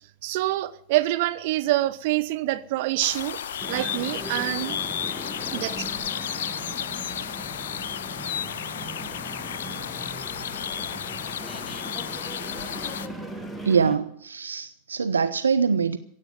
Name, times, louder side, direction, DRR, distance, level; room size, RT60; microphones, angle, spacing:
voice 1, 0.2-3.4 3.7-4.8 5.5-5.9, right 16 dB, 50° right, 0.9 m, -26 dB
sound 1, 3.0-13.1, left 9 dB, 60° left, 0.7 m, -33 dB
sound 2, 3.6-14.0, right 1 dB, ahead, 1.8 m, -38 dB
voice 2, 13.6-16.0, right 5 dB, 75° right, 0.6 m, -23 dB
16.0 x 8.5 x 9.3 m
figure-of-eight pair, 90°, 0 cm